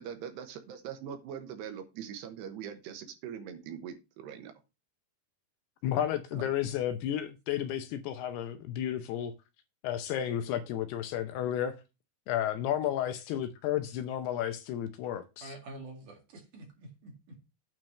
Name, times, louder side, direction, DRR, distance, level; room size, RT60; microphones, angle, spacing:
voice 1, 0.0-4.5, right 8 dB, 75° right, 3.2 m, -42 dB
voice 2, 5.8-9.3 9.8-11.8 12.3-15.5, left 10 dB, 80° left, 2.5 m, -32 dB
voice 3, 15.4-17.4, right 2 dB, 50° right, 3.4 m, -47 dB
9.1 x 4.5 x 6.3 m
omnidirectional pair, 5.0 m